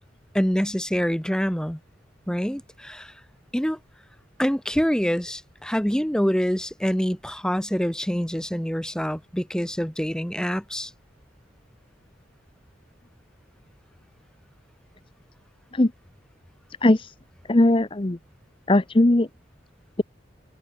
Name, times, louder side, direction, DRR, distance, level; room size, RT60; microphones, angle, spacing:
voice 1, 0.3-1.8 2.3-3.1 3.5-3.8 4.4-10.9, equal, 5° left, 1.1 m, -25 dB
voice 2, 17.5-18.2 18.7-19.3, left 1 dB, 30° left, 0.8 m, -19 dB
head